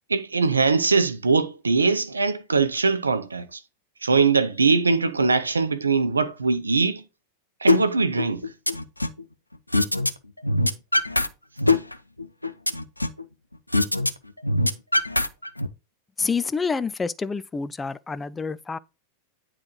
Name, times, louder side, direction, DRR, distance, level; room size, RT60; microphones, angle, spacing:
voice 1, 0.1-3.6 4.0-7.0 7.6-8.4, right 4 dB, 75° right, 0.6 m, -21 dB
sound 1, 7.7-7.8 8.2-9.2 9.7-10.1 10.4-11.3 11.6-13.2 13.7-14.1 14.4-15.7, left 2 dB, 85° left, 0.4 m, -22 dB
voice 2, 16.2-18.8, left 5 dB, 15° left, 0.3 m, -28 dB
9.5 x 3.9 x 3.1 m
figure-of-eight pair, 90°, 0 cm